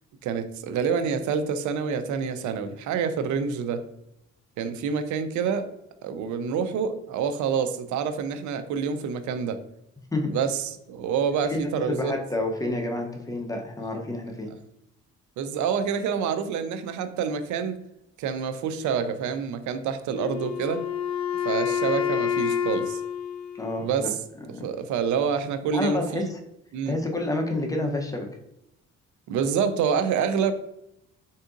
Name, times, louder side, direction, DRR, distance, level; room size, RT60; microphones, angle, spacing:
voice 1, 0.2-3.8 4.6-5.7 6.0-9.6 10.3-12.1 15.4-17.8 18.2-20.8 21.5-23.0 23.8-24.2 24.6-26.3 26.7-27.0 29.3-30.5, right 6 dB, 75° right, 10 dB, 0.4 m, -27 dB
voice 2, 11.4-14.5 23.5-24.1 24.4-24.7 25.7-26.4 26.9-28.3, left 2 dB, 10° left, 2 dB, 0.6 m, -29 dB
Wind instrument woodwind instrument, 20.1-24.2, left 8 dB, 65° left, 0.5 m, -28 dB
3.5 x 2.7 x 2.4 m, 0.81 s
cardioid pair, 90°, 30 cm